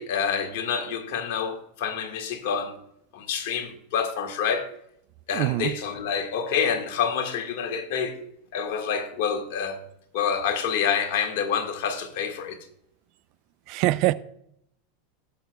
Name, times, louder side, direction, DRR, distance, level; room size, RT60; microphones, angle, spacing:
voice 1, 0.0-2.8 3.1-4.7 5.3-8.2 8.5-9.8 10.1-12.6, left 7 dB, 65° left, 1.7 m, -27 dB
voice 2, 5.3-5.7 13.7-14.1, right 17 dB, 55° right, 0.5 m, -23 dB
18.5 x 6.4 x 2.3 m
hypercardioid pair, 105°, 0 cm